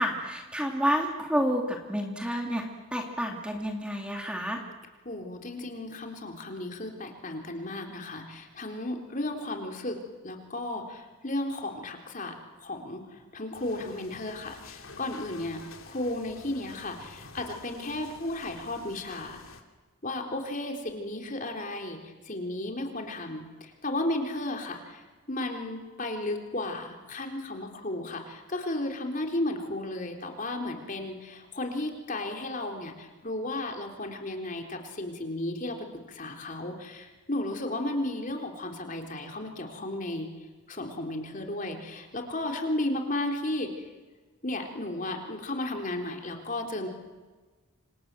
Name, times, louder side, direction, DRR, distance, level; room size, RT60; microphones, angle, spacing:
voice 1, 0.0-4.6, equal, 5° right, 1 dB, 2.5 m, -29 dB
voice 2, 5.1-10.0 10.2-15.6 15.9-19.4 20.0-25.0 25.3-40.3 40.7-43.7 44.4-46.9, left 1 dB, 40° left, 3 dB, 3.7 m, -34 dB
sound 1, 13.5-19.6, left 3 dB, 75° left, 2.9 m, -49 dB
28.5 x 26.5 x 7.7 m, 1.3 s
head